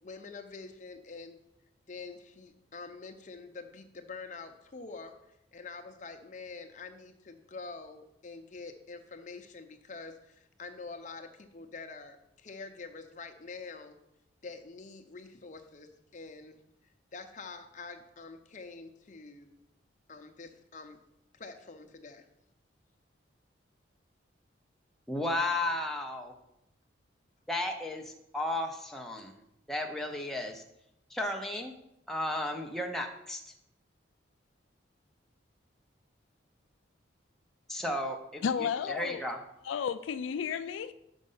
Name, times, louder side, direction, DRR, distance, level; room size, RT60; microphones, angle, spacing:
voice 1, 0.0-1.4 1.9-5.1 5.5-14.0 14.4-16.6 17.1-19.5 20.1-21.0 21.3-22.3, left 4 dB, 40° left, 6 dB, 0.7 m, -46 dB
voice 2, 25.1-26.3 27.5-29.4 29.7-30.6 31.1-31.7 32.1-33.4 37.7-39.4, left 1 dB, ahead, 1 dB, 0.6 m, -34 dB
voice 3, 38.4-39.2 39.6-40.9, left 7 dB, 80° left, 12 dB, 0.3 m, -32 dB
6.3 x 5.2 x 5.5 m, 0.82 s
head